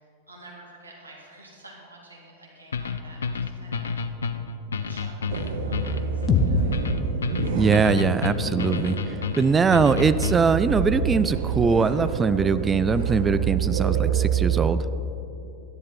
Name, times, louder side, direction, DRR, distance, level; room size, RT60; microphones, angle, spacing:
voice 1, 0.3-3.9 4.8-6.7, right 2 dB, 80° right, -3 dB, 2.3 m, -48 dB
sound 1, 2.7-10.6, left 5 dB, 70° left, 0.5 m, -30 dB
sound 2, 5.3-14.7, right 7 dB, 55° right, 1.1 m, -27 dB
sound 3, 6.3-10.2, left 3 dB, 30° left, 0.9 m, -28 dB
voice 2, 7.6-14.9, right 5 dB, 15° right, 14 dB, 0.3 m, -22 dB
12.5 x 10.0 x 4.3 m, 2.7 s
figure-of-eight pair, 90°, 0 cm